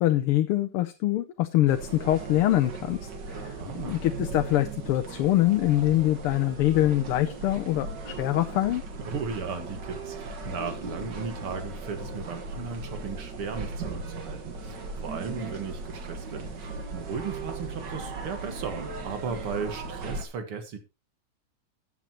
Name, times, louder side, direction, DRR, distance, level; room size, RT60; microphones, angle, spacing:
voice 1, 0.0-3.0 3.3-8.8, left 14 dB, 85° left, 1.7 m, -24 dB
sound 1, 1.7-20.2, right 3 dB, 55° right, 2.1 m, -37 dB
voice 2, 3.3-4.0 9.0-20.8, right 5 dB, 80° right, 2.5 m, -36 dB
14.5 x 9.1 x 2.9 m
omnidirectional pair, 2.4 m